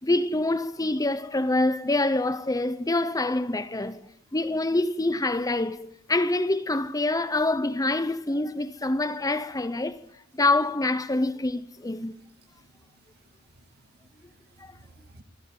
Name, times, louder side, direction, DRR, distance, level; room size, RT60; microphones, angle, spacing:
voice 1, 0.0-4.0 4.3-10.0 10.4-12.2 14.6-14.7, left 2 dB, 15° left, 0.9 m, -26 dB
voice 2, 12.1-15.2, right 2 dB, 50° right, 2.1 m, -58 dB
24.5 x 15.5 x 9.4 m
head